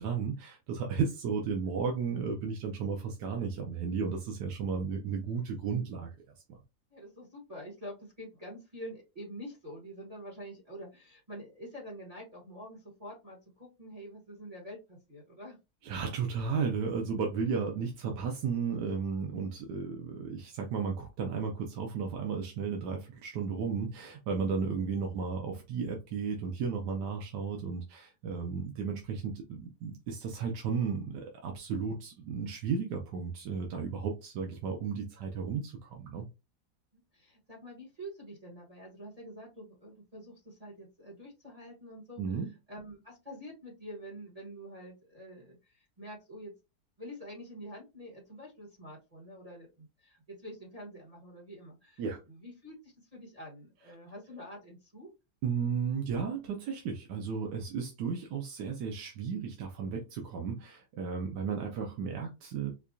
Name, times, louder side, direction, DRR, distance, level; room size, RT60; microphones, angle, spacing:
voice 1, 0.0-6.1 6.5-6.6 15.8-36.3 42.2-42.5 52.0-52.2 55.4-62.7, right 5 dB, 90° right, 1.3 m, -34 dB
voice 2, 6.9-15.6 36.9-42.4 42.7-46.5 47.0-55.1, equal, 25° right, 1.2 m, -47 dB
4.7 x 2.3 x 2.6 m
omnidirectional pair, 1.7 m